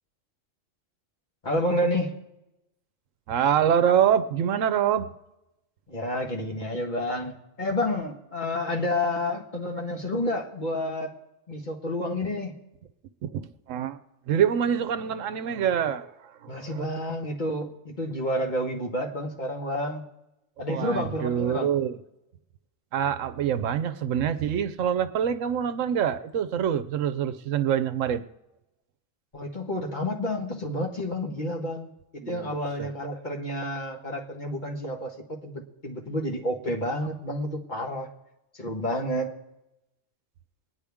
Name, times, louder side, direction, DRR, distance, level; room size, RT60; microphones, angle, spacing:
voice 1, 1.4-2.2 5.9-11.1 11.5-12.5 16.5-20.0 20.6-21.7 29.3-31.9 32.3-38.1 38.6-39.3, left 1 dB, 40° left, 0 dB, 1.6 m, -30 dB
voice 2, 3.3-5.1 13.2-14.0 14.3-16.9 20.6-22.0 22.9-28.2 32.2-32.9, right 9 dB, 80° right, 11 dB, 1.0 m, -26 dB
25.0 x 10.0 x 3.5 m, 0.93 s
omnidirectional pair, 1.3 m